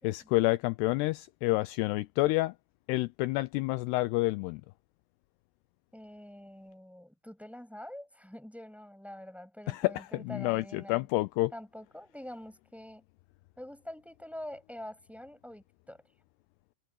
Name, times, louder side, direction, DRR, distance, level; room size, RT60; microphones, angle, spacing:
voice 1, 0.0-2.5 2.9-4.6 9.7-11.5, left 20 dB, 80° left, 2.6 m, -29 dB
voice 2, 5.9-11.1 11.5-13.0 13.6-16.0, left 1 dB, ahead, 6.4 m, -46 dB
omnidirectional pair, 4.9 m